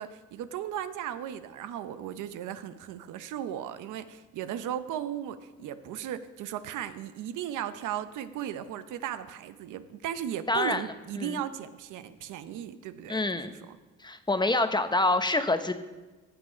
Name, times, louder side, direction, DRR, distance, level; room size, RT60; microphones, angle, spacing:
voice 1, 0.0-13.8, right 10 dB, 85° right, 11 dB, 0.8 m, -36 dB
voice 2, 10.5-10.8 11.2-11.4 13.1-13.5 14.0-15.7, left 2 dB, 15° left, 9 dB, 0.9 m, -26 dB
14.5 x 7.8 x 5.0 m, 1.2 s
cardioid pair, 90°, 30 cm